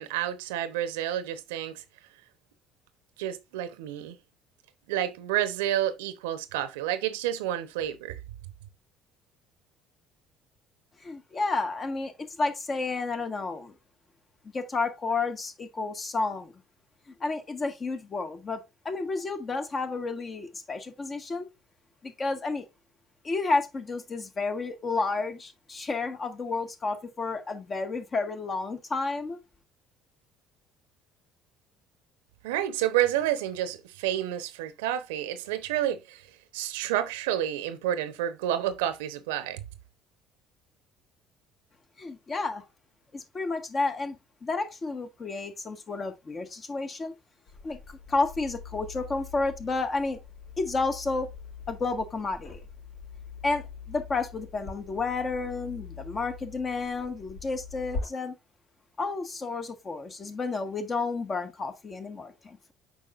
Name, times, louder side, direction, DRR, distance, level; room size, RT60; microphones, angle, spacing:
voice 1, 0.0-1.8 3.2-4.2 4.9-8.2 32.4-36.3 36.5-39.6, right 12 dB, 75° right, 0.8 m, -29 dB
voice 2, 11.0-12.1 12.4-13.7 14.5-16.5 17.2-21.5 22.0-22.7 23.2-29.4 42.0-42.6 43.1-47.1 47.6-50.2 50.6-51.3 51.7-52.6 53.4-58.3 59.0-62.7, left 3 dB, 35° left, 1.7 m, -31 dB
sound 1, 47.5-58.0, left 5 dB, 75° left, 4.6 m, -43 dB
8.1 x 5.4 x 2.5 m
hypercardioid pair, 60°, 0 cm